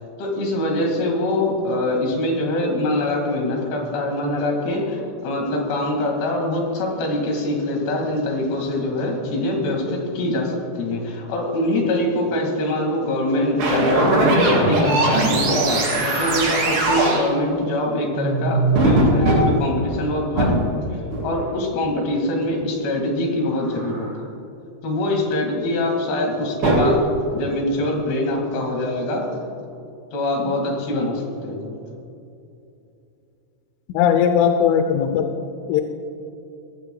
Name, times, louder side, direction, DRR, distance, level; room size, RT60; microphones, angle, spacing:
voice 1, 0.2-24.1 24.8-29.4 30.1-31.7, left 1 dB, 60° left, 1 dB, 4.0 m, -24 dB
sound 1, 13.6-17.3 18.1-19.5 19.9-20.0 20.4-20.6 21.1-21.3 23.7-24.1 26.6-27.0, right 2 dB, 65° right, 5.7 m, -19 dB
voice 2, 33.9-35.3 35.7-35.8, left 8 dB, 85° left, 6 dB, 3.1 m, -18 dB
21.0 x 16.5 x 2.3 m, 2.7 s
omnidirectional pair, 5.6 m